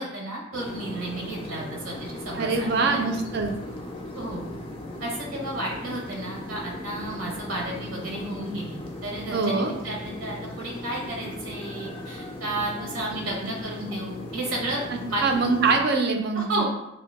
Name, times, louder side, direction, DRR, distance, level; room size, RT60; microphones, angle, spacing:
voice 1, 0.0-3.0 4.2-4.5 5.0-15.2 16.3-16.6, right 1 dB, 70° right, -2 dB, 0.7 m, -32 dB
sound 1, 0.5-15.8, left 1 dB, 25° left, 0.3 m, -38 dB
voice 2, 2.3-3.5 9.3-9.7 15.2-16.6, right 4 dB, 50° right, 3 dB, 0.4 m, -23 dB
2.6 x 2.1 x 3.9 m, 0.87 s
head